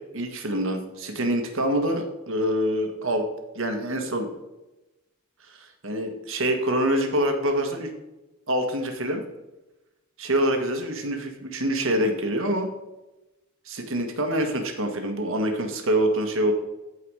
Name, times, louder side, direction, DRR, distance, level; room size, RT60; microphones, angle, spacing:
voice 1, 0.1-3.2 3.5-4.3 5.4-7.9 8.5-9.2 10.2-12.7 13.6-16.5, right 1 dB, 65° right, 5 dB, 1.6 m, -25 dB
14.5 x 4.9 x 4.9 m, 1.0 s
head